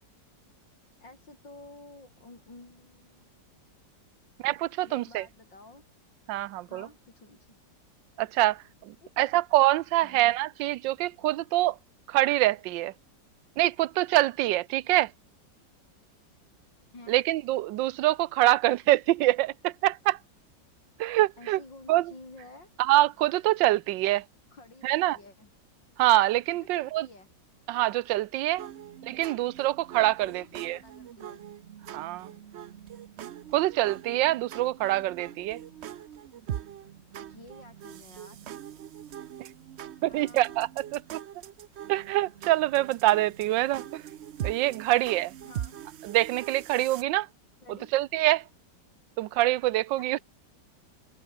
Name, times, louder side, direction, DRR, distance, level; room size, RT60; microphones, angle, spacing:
voice 1, 1.0-3.3 4.8-5.9 6.7-7.6 9.0-9.4 10.0-10.3 16.9-17.2 21.4-22.7 24.1-24.2 24.5-25.5 26.5-27.3 30.2-31.4 37.2-38.4 40.1-40.6 45.4-45.8 47.6-47.9 50.0-50.2, left 2 dB, 85° left, 7.4 m, -51 dB
voice 2, 4.4-5.2 6.3-6.9 8.2-11.8 12.1-12.9 13.6-15.1 17.1-20.2 21.0-21.6 21.9-22.1 22.8-24.2 24.8-25.2 26.0-27.1 27.7-28.7 29.0-30.8 31.9-32.3 33.5-35.6 39.4-39.5 40.0-41.2 41.9-44.0 44.4-45.3 46.0-47.3 47.7-48.4 49.2-50.2, right 16 dB, 90° right, 1.3 m, -25 dB
sound 1, 28.6-47.0, right 10 dB, 70° right, 0.6 m, -42 dB
omnidirectional pair, 1.9 m